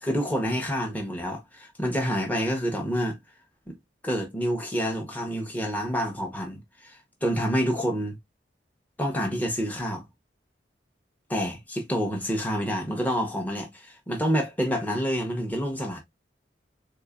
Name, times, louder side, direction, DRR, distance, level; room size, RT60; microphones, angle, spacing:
voice 1, 0.0-3.2 3.7-3.8 4.0-8.2 9.0-10.0 11.3-16.0, equal, 10° left, 0.7 m, -28 dB
3.6 x 3.0 x 2.3 m
head